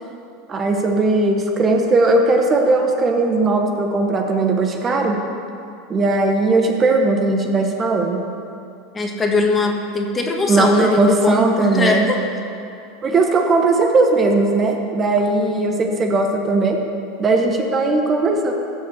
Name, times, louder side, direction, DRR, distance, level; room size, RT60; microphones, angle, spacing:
voice 1, 0.5-5.2 5.9-8.2 10.5-12.1 13.0-16.8 17.2-18.5, right 2 dB, 30° right, 3 dB, 1.1 m, -18 dB
voice 2, 8.9-12.2, left 3 dB, 20° left, 2 dB, 1.4 m, -20 dB
15.0 x 5.3 x 6.6 m, 2.6 s
supercardioid pair, 115°, 0 cm